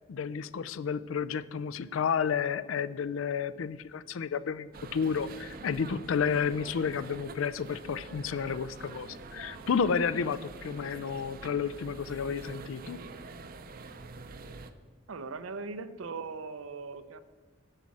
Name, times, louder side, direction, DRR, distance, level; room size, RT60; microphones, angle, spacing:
voice 1, 0.1-13.0, left 6 dB, 80° left, 0.4 m, -31 dB
sound 1, 4.7-14.7, right 3 dB, 45° right, 0.5 m, -46 dB
voice 2, 15.1-17.2, right 4 dB, 90° right, 0.6 m, -39 dB
11.0 x 7.4 x 4.1 m
head